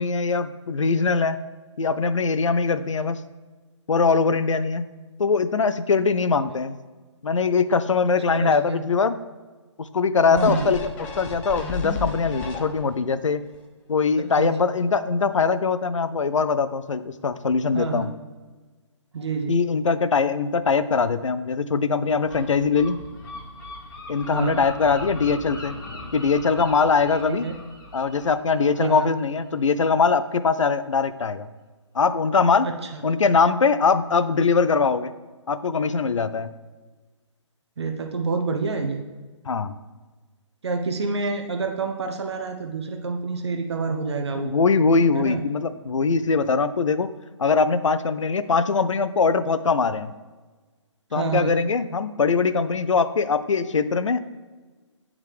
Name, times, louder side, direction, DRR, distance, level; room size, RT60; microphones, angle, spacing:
voice 1, 0.0-1.4 1.8-3.2 3.9-4.9 5.2-6.8 7.2-9.2 9.8-10.9 11.2-13.4 13.9-18.1 19.5-23.0 24.1-25.8 26.1-27.5 27.9-31.5 31.9-32.7 33.0-35.1 35.5-36.5 39.5-39.7 44.4-47.1 47.4-50.1 51.1-54.2, left 5 dB, 80° left, 13 dB, 0.4 m, -22 dB
voice 2, 8.3-8.8 10.3-10.7 14.2-14.7 17.7-18.1 19.1-19.5 24.3-24.6 27.3-27.6 28.8-29.1 32.6-33.0 37.8-39.0 40.6-44.5 45.1-45.4 51.1-51.6, right 4 dB, 60° right, 4 dB, 0.7 m, -28 dB
sound 1, 10.4-13.1 13.5-13.6, left 5 dB, 10° left, 0.3 m, -32 dB
Gull seagull, 22.2-29.8, left 2 dB, 40° left, 1.3 m, -40 dB
9.3 x 3.6 x 3.3 m, 1.3 s
figure-of-eight pair, 140°, 16 cm